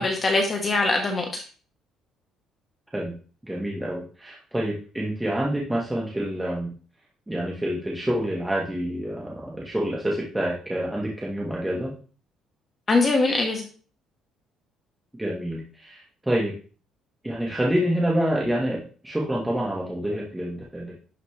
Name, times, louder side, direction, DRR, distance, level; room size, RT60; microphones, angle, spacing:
voice 1, 0.0-1.4 12.9-13.7, left 3 dB, 25° left, 2 dB, 1.1 m, -22 dB
voice 2, 3.4-6.7 7.3-11.9 15.1-16.5 17.2-20.9, equal, 5° right, -3 dB, 1.2 m, -27 dB
11.0 x 4.2 x 3.3 m, 0.39 s
cardioid pair, 170°, 0 cm